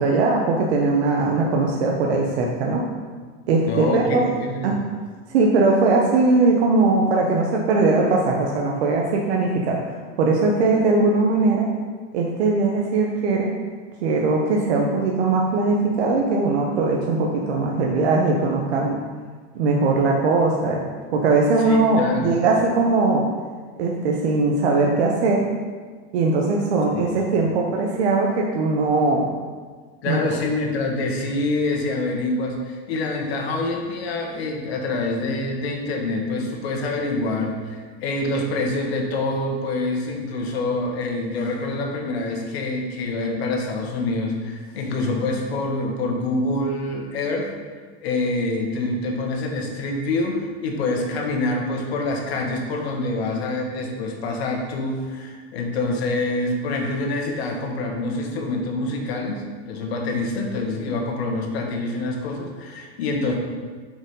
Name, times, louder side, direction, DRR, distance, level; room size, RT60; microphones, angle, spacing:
voice 1, 0.0-2.8 3.5-4.2 4.6-4.8 5.3-11.7 12.1-13.5 14.0-19.0 19.5-20.8 21.1-23.3 23.8-25.4 26.1-29.3 30.0-30.2, right 3 dB, 80° right, -1 dB, 1.1 m, -20 dB
voice 2, 3.7-4.7 21.6-22.3 26.9-27.2 30.0-47.5 48.0-63.3, left 2 dB, 75° left, 1 dB, 1.7 m, -26 dB
7.3 x 5.2 x 5.4 m, 1.5 s
supercardioid pair, 175°, 32 cm